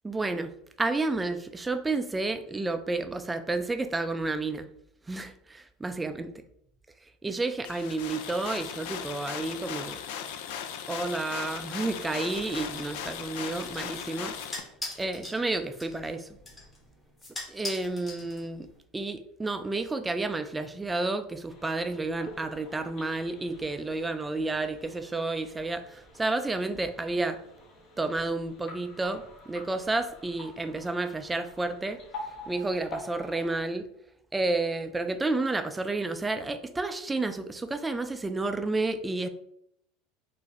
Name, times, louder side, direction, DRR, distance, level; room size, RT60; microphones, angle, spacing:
voice 1, 0.0-0.5 0.8-4.7 5.1-6.3 7.2-10.0 10.9-14.3 15.0-16.3 17.5-18.7 18.9-27.4 28.0-32.0 32.5-33.9 34.3-39.3, right 2 dB, 15° right, 9 dB, 0.3 m, -31 dB
sound 1, 7.6-14.6, left 8 dB, 75° left, 0.4 m, -38 dB
sound 2, 12.3-18.8, left 2 dB, 20° left, 1.2 m, -43 dB
sound 3, 21.5-33.6, left 1 dB, 50° left, 1.0 m, -47 dB
3.5 x 2.6 x 3.1 m, 0.72 s
supercardioid pair, 110°, 0 cm